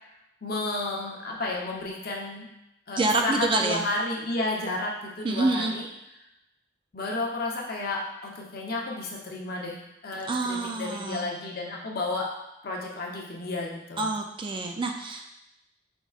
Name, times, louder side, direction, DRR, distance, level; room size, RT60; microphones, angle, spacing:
voice 1, 0.4-2.5 2.9-5.9 6.9-9.8 10.0-12.3 12.6-14.1, left 2 dB, 55° left, -2 dB, 0.8 m, -32 dB
voice 2, 3.0-3.8 5.2-5.7 10.3-11.2 14.0-15.3, right 2 dB, 30° right, 3 dB, 0.3 m, -27 dB
5.4 x 3.5 x 2.4 m, 0.88 s
head